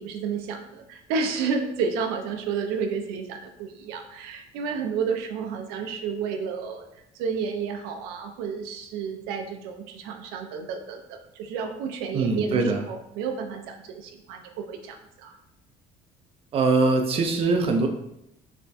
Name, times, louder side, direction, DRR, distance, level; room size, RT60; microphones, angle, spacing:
voice 1, 0.0-6.9 7.2-15.4, right 5 dB, 90° right, 5 dB, 0.5 m, -31 dB
voice 2, 12.1-12.8 16.5-17.9, right 3 dB, 40° right, 4 dB, 0.5 m, -22 dB
3.4 x 2.2 x 4.0 m, 0.81 s
cardioid pair, 120°, 15 cm